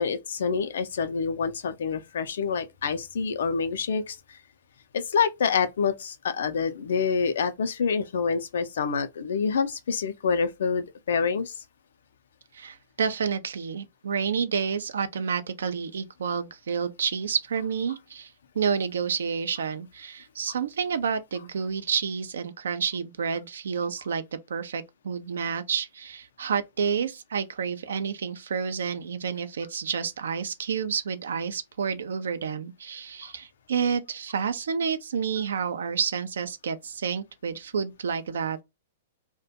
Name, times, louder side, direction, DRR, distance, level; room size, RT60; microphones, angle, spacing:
voice 1, 0.0-4.4 4.9-11.6, left 5 dB, 60° left, 0.4 m, -27 dB
voice 2, 12.5-24.2 24.5-38.6, right 6 dB, 65° right, 0.4 m, -29 dB
2.4 x 2.1 x 2.6 m
figure-of-eight pair, 105°, 0 cm